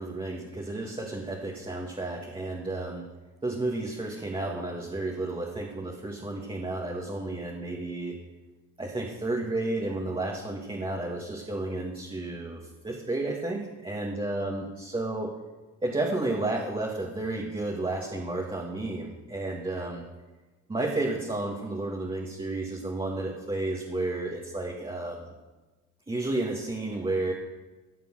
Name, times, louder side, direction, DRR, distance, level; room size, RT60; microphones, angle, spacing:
voice 1, 0.0-3.1 3.4-8.2 8.8-15.3 15.8-20.0 20.7-25.3 26.1-27.3, right 2 dB, 15° right, -2 dB, 1.9 m, -32 dB
13.5 x 6.8 x 6.3 m, 1.2 s
cardioid pair, 90°, 30 cm